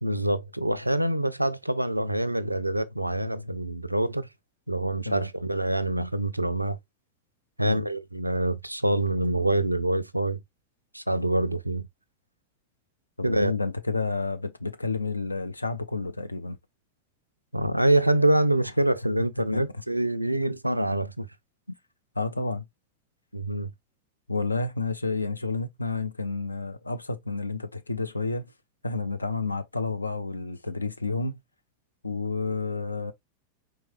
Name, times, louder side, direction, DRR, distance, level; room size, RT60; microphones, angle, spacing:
voice 1, 0.0-4.3 4.7-6.8 7.6-10.4 10.9-11.9 13.2-13.5 17.5-21.3 23.3-23.7, right 1 dB, 85° right, 0.4 m, -25 dB
voice 2, 13.2-16.6 19.5-19.6 22.2-22.6 24.3-28.5 28.8-31.4 32.0-33.1, left 3 dB, 80° left, 0.5 m, -30 dB
4.6 x 3.5 x 2.4 m
figure-of-eight pair, 90°, 0 cm